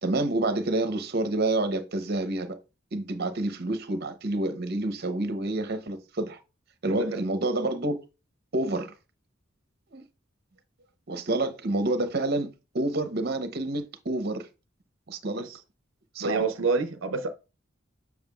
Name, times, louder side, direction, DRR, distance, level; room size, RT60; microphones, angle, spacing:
voice 1, 0.0-2.6 2.9-6.4 6.8-8.0 8.5-8.9 9.9-10.0 11.1-14.5 15.1-15.5 16.1-16.4, right 2 dB, 55° right, 0.8 m, -28 dB
voice 2, 6.8-7.2 15.3-15.6 16.2-17.3, right 4 dB, 85° right, 0.6 m, -28 dB
7.2 x 6.1 x 2.4 m
head